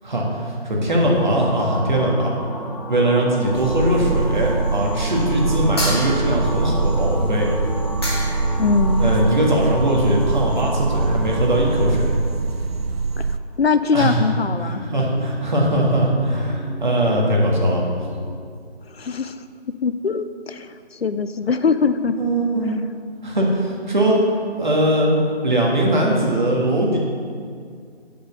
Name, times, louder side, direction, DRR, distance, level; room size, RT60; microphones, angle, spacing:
voice 1, 0.0-2.3 2.9-7.5 9.0-12.1 13.9-14.2 14.6-17.8 22.2-22.8 23.2-24.2 24.6-25.1 25.4-27.0, right 1 dB, 45° right, -2 dB, 1.6 m, -20 dB
sound 1, 1.4-13.3 13.8-18.4, left 1 dB, 40° left, 0.8 m, -32 dB
sound 2, 3.5-13.4, right 4 dB, 65° right, 0.4 m, -24 dB
sound 3, 5.8-6.6 7.7-7.8 8.0-8.6, equal, 25° left, 1.2 m, -28 dB
voice 2, 8.6-9.1 13.2-14.9 18.9-22.2 22.7-22.8, left 5 dB, 65° left, 11 dB, 0.5 m, -22 dB
7.0 x 5.3 x 6.6 m, 2.1 s
figure-of-eight pair, 170°, 33 cm